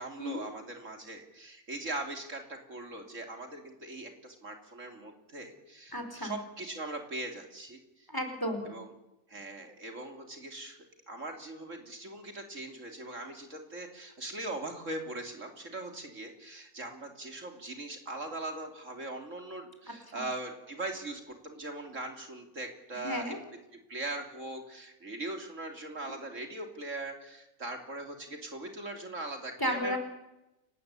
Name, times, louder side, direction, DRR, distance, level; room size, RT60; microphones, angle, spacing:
voice 1, 0.0-8.1 8.6-8.9 9.3-10.8 11.1-23.4 23.9-30.0, right 2 dB, 55° right, 4 dB, 3.4 m, -40 dB
voice 2, 5.9-6.3 8.1-8.7 20.1-20.2 22.9-23.4 29.6-30.0, equal, 15° left, 5 dB, 4.7 m, -33 dB
29.5 x 17.5 x 8.5 m, 0.91 s
omnidirectional pair, 1.5 m